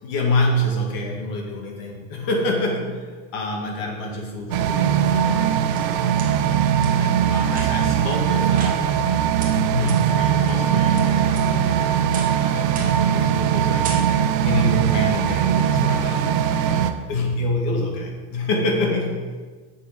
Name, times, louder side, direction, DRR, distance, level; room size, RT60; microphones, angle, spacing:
voice 1, 0.0-6.2 6.8-8.9 9.4-12.7 13.0-13.9 14.4-19.3, left 1 dB, 45° left, 0 dB, 2.0 m, -27 dB
sound 1, 4.5-16.9, right 9 dB, 75° right, 0.8 m, -20 dB
sound 2, 5.8-6.3 6.8-6.9 7.5-8.0 8.6-9.1 9.4-9.5 9.9-10.0 10.5-11.0 11.4-11.7 12.1-12.4 12.8-13.1 13.4-13.6 13.8-14.4, right 4 dB, 15° right, 1.0 m, -36 dB
8.1 x 6.9 x 5.2 m, 1.4 s
supercardioid pair, 175°, 50 cm